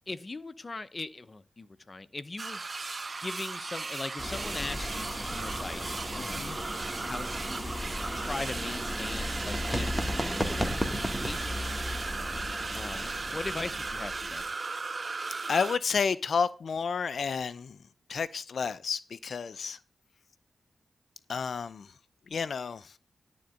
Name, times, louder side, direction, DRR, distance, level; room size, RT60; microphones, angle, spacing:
voice 1, 0.1-2.6 3.2-6.4 7.1-7.8 8.1-11.6 12.7-14.5, left 3 dB, 40° left, 0.8 m, -40 dB
sound 1, 2.4-15.8, right 3 dB, 50° right, 0.4 m, -37 dB
sound 2, 4.2-14.5, equal, ahead, 2.2 m, -35 dB
voice 2, 6.2-6.6 15.5-17.8 18.1-19.8 21.3-21.9 22.3-22.9, left 5 dB, 75° left, 0.4 m, -31 dB
11.5 x 3.9 x 7.6 m
cardioid pair, 45°, 0 cm